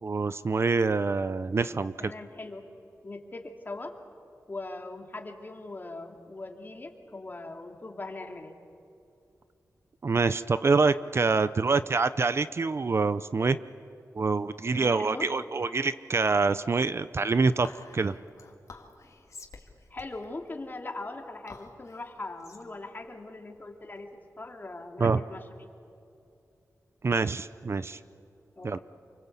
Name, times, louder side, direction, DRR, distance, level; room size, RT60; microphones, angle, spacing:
voice 1, 0.0-2.1 10.0-13.6 14.1-18.2 25.0-25.2 27.0-28.0 28.6-28.8, right 4 dB, 50° right, 13 dB, 0.7 m, -26 dB
voice 2, 2.0-2.7 3.0-3.9 4.5-8.6 14.8-15.3 19.9-24.1 24.4-25.4 28.6-28.8, left 2 dB, 35° left, 3 dB, 2.9 m, -40 dB
Whispering, 17.6-24.3, left 4 dB, 60° left, 2.8 m, -51 dB
28.5 x 24.5 x 8.3 m, 2.7 s
wide cardioid pair, 95°, 6 cm